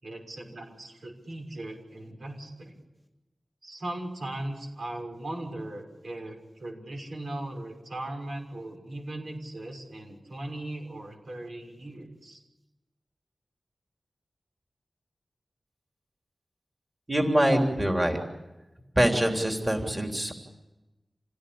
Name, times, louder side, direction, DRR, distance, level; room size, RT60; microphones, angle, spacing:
voice 1, 0.0-2.8 3.6-12.4, right 1 dB, 75° right, 2 dB, 6.0 m, -38 dB
voice 2, 17.1-18.2 19.0-20.3, right 1 dB, 20° right, 2 dB, 3.6 m, -24 dB
28.0 x 17.0 x 8.7 m, 1.0 s
wide cardioid pair, 75°, 0 cm